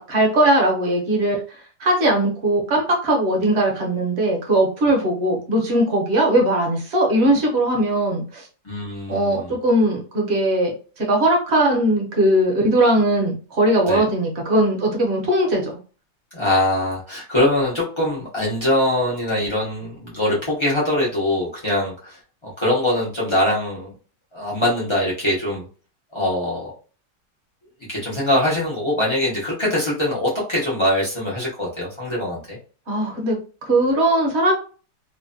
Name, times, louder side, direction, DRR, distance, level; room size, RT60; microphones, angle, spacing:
voice 1, 0.0-8.5 9.1-15.8 32.9-34.5, right 1 dB, 50° right, 0 dB, 0.8 m, -19 dB
voice 2, 8.6-9.5 13.9-14.0 16.3-23.9 24.3-25.7 26.1-26.7 27.9-32.6, left 1 dB, 45° left, -5 dB, 0.3 m, -22 dB
3.1 x 2.1 x 2.5 m, 0.37 s
omnidirectional pair, 1.8 m